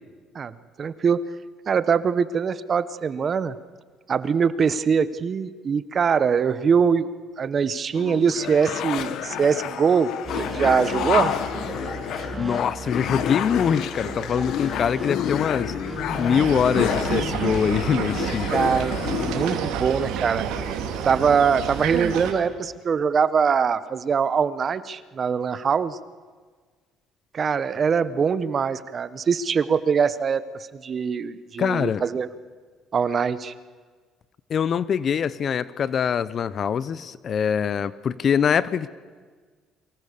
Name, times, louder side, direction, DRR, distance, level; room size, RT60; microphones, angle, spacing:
voice 1, 0.8-1.2 1.7-3.5 4.1-7.1 7.4-11.3 18.5-20.5 21.0-26.0 27.3-30.4 30.7-32.3 32.9-33.5, right 6 dB, 45° right, 14 dB, 1.2 m, -23 dB
sound 1, 7.9-19.6, left 10 dB, 70° left, 1.6 m, -29 dB
sound 2, 10.2-18.2, right 2 dB, 10° right, 6.7 m, -36 dB
voice 2, 12.4-15.7 16.2-18.5 31.6-32.0 34.5-38.9, left 7 dB, 50° left, 17 dB, 1.0 m, -23 dB
sound 3, 16.3-22.3, right 8 dB, 80° right, 3.2 m, -29 dB
30.0 x 24.0 x 6.9 m, 1.5 s
supercardioid pair, 80°, 0 cm